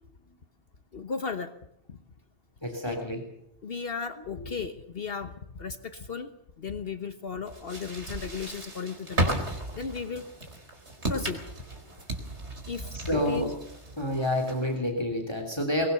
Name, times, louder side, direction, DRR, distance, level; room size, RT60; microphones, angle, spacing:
voice 1, 0.9-1.5 1.9-2.0 2.9-3.0 3.6-6.3 6.6-10.2 11.1-11.4 12.7-13.5, left 5 dB, 55° left, 8 dB, 1.3 m, -35 dB
voice 2, 2.6-3.2 4.4-4.5 12.9-13.5 14.0-15.9, left 1 dB, 20° left, 3 dB, 3.1 m, -29 dB
sound 1, 7.5-14.8, right 1 dB, 70° right, 4.3 m, -35 dB
22.0 x 21.5 x 6.9 m, 0.76 s
omnidirectional pair, 1.2 m